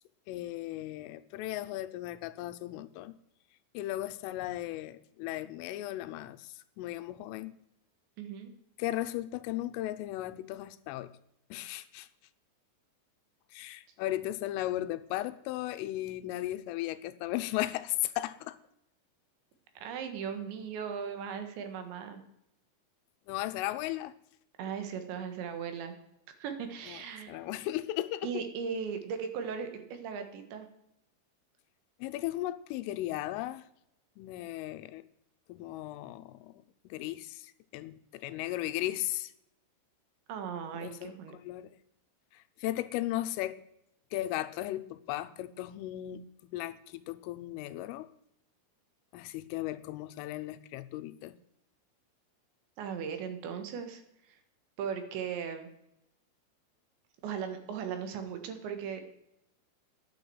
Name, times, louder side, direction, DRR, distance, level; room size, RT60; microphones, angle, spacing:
voice 1, 0.3-3.1 3.7-7.6 8.8-11.1 11.5-12.1 13.5-18.6 23.3-24.1 26.9-28.4 32.0-33.7 34.2-35.1 35.5-39.3 40.7-41.8 42.3-43.6 44.1-48.1 49.1-51.4, left 15 dB, 85° left, 13 dB, 3.3 m, -36 dB
voice 2, 8.2-8.5 19.8-22.2 24.6-26.0 26.4-27.4 28.2-30.7 40.3-41.3 52.8-54.4 54.8-55.7 57.2-59.1, right 7 dB, 70° right, 7 dB, 3.6 m, -38 dB
11.0 x 9.5 x 7.8 m, 0.80 s
omnidirectional pair, 5.7 m